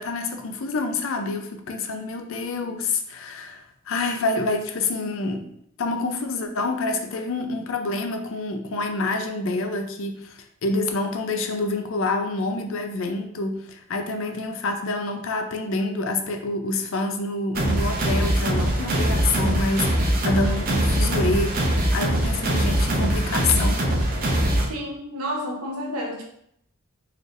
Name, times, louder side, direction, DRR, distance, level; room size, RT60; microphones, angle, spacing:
voice 1, 0.0-5.5 5.8-23.9, left 3 dB, 65° left, 5 dB, 0.5 m, -27 dB
sound 1, 17.5-24.7, right 1 dB, 45° right, 0.7 m, -22 dB
voice 2, 24.7-26.2, equal, 85° right, -1 dB, 1.0 m, -30 dB
4.1 x 3.3 x 2.5 m, 0.71 s
head